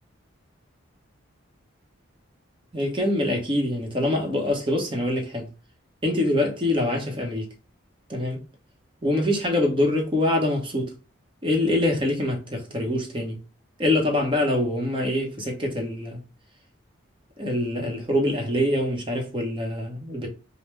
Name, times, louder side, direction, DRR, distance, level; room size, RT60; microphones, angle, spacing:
voice 1, 2.7-5.5 6.0-7.5 8.1-8.4 9.0-10.9 11.4-13.4 13.8-16.2 17.4-20.3, left 1 dB, 25° right, 0.9 m, -24 dB
5.3 x 2.1 x 3.2 m
head